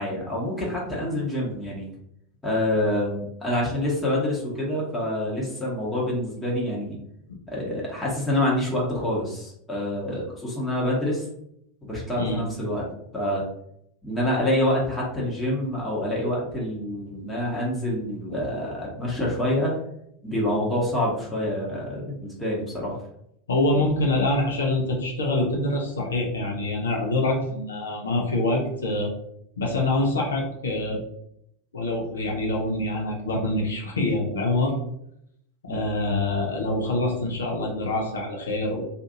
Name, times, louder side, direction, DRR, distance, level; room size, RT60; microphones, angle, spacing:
voice 1, 0.0-1.9 2.4-7.0 7.5-11.2 11.8-12.8 13.1-13.4 14.0-19.7 20.2-22.9 35.7-35.8, left 1 dB, 15° left, -4 dB, 0.9 m, -26 dB
voice 2, 23.5-29.1 29.6-31.0 31.7-34.8 35.7-38.9, left 2 dB, 75° left, 0 dB, 0.6 m, -25 dB
2.5 x 2.5 x 2.6 m, 0.74 s
figure-of-eight pair, 85°, 0 cm